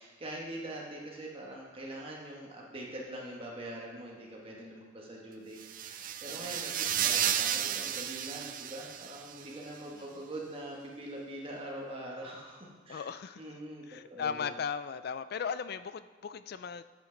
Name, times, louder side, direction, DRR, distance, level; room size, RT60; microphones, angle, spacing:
voice 1, 0.0-13.1 13.4-14.5, right 1 dB, 30° right, -2 dB, 1.4 m, -43 dB
sound 1, 5.6-9.5, right 10 dB, 45° right, 0.4 m, -33 dB
voice 2, 6.2-6.6 9.9-10.2 12.9-13.5 13.9-16.8, left 6 dB, 50° left, 13 dB, 0.3 m, -37 dB
9.1 x 8.2 x 3.9 m, 1.3 s
head